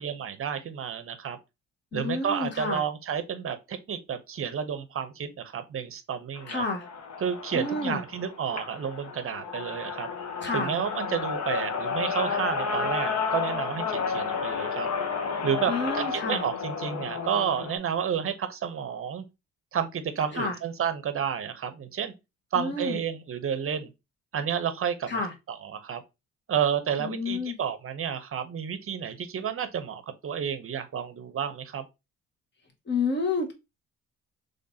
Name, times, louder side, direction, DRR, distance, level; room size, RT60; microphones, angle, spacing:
voice 1, 0.0-1.4 1.9-6.6 7.2-10.1 10.5-14.9 15.4-19.2 19.7-22.1 22.5-23.9 24.3-25.2 25.5-26.0 26.5-31.8, right 8 dB, 45° right, 0.7 m, -31 dB
voice 2, 1.9-2.8 6.5-6.9 7.5-8.0 10.4-10.7 15.7-16.4 20.3-20.6 22.5-23.0 25.1-25.3 27.0-27.5 32.9-33.5, left 3 dB, 35° left, 1.2 m, -29 dB
sound 1, 6.4-17.8, left 5 dB, 60° left, 1.0 m, -31 dB
3.8 x 3.3 x 2.7 m
cardioid pair, 90°, 30 cm